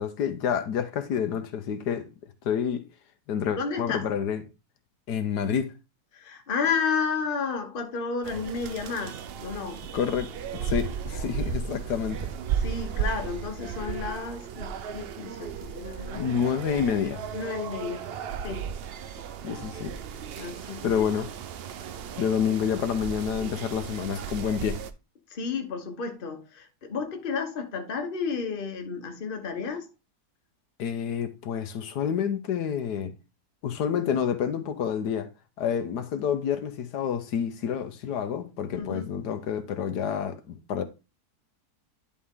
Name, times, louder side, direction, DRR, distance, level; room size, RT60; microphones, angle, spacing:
voice 1, 0.0-2.0 2.4-2.8 3.3-4.4 5.1-5.7 9.9-10.3 10.6-12.3 16.2-17.2 19.4-19.9 20.8-21.3 22.2-24.8 30.8-33.1 33.6-35.3 35.6-40.8, left 8 dB, 85° left, 1.5 m, -28 dB
voice 2, 3.5-4.1 6.1-9.8 12.6-16.5 17.3-18.1 18.4-18.7 20.4-21.1 25.3-29.9 38.8-39.1, left 5 dB, 35° left, 1.2 m, -32 dB
sound 1, 8.2-24.9, right 7 dB, 70° right, 0.5 m, -35 dB
10.5 x 4.2 x 3.6 m
omnidirectional pair, 1.7 m